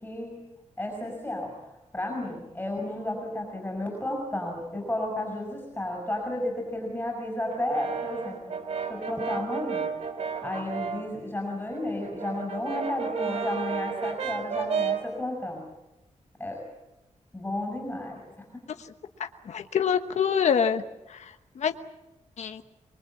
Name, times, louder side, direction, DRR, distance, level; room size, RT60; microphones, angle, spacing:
voice 1, 0.0-0.3 0.8-1.5 1.9-8.4 8.9-9.9 10.4-15.7 16.4-16.6 17.3-18.2 18.5-18.6, left 1 dB, 10° left, 1 dB, 5.8 m, -32 dB
Brass instrument, 7.5-11.1 11.5-15.1, right 6 dB, 60° right, 2.7 m, -32 dB
voice 2, 19.2-20.8 21.1-21.2 21.6-21.7 22.4-22.6, left 7 dB, 65° left, 8 dB, 1.2 m, -25 dB
24.0 x 23.0 x 8.6 m, 0.98 s
wide cardioid pair, 160°, 12 cm